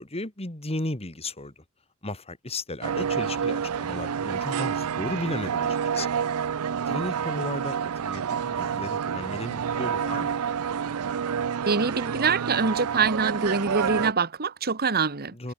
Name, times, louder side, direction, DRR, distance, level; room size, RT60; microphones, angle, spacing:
voice 1, 0.0-1.6 2.0-6.1 6.7-10.5 15.3-15.5, left 2 dB, 30° left, 2.7 m, -35 dB
sound 1, 2.8-14.1, right 7 dB, 90° right, 0.5 m, -28 dB
voice 2, 11.6-15.3, right 5 dB, 45° right, 1.6 m, -25 dB
head